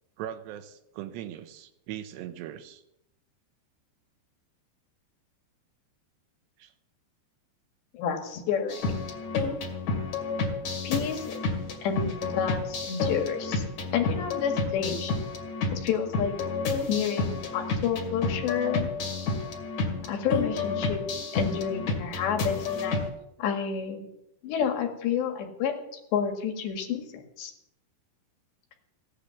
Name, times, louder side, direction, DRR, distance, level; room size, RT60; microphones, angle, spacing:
voice 1, 0.2-2.8 6.6-6.7, right 11 dB, 80° right, 9 dB, 3.0 m, -40 dB
voice 2, 7.9-8.8 10.8-11.4 11.8-13.6 13.9-15.1 15.7-16.3 16.9-18.9 20.1-21.0 21.3-23.0 23.4-24.1 24.4-25.7 26.1-27.5, left 7 dB, 80° left, 4 dB, 4.1 m, -29 dB
sound 1, 8.7-23.1, left 3 dB, 45° left, 3.1 m, -30 dB
16.5 x 10.0 x 7.0 m, 0.83 s
omnidirectional pair, 5.0 m